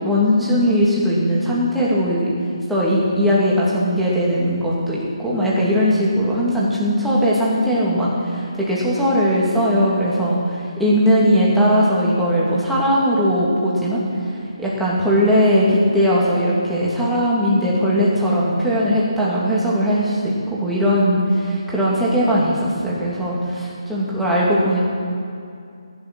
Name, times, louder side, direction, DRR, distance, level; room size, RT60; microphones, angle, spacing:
voice 1, 0.0-2.3 2.7-24.9, equal, ahead, -8 dB, 2.4 m, -19 dB
16.0 x 11.0 x 6.1 m, 2.5 s
figure-of-eight pair, 165°, 3 cm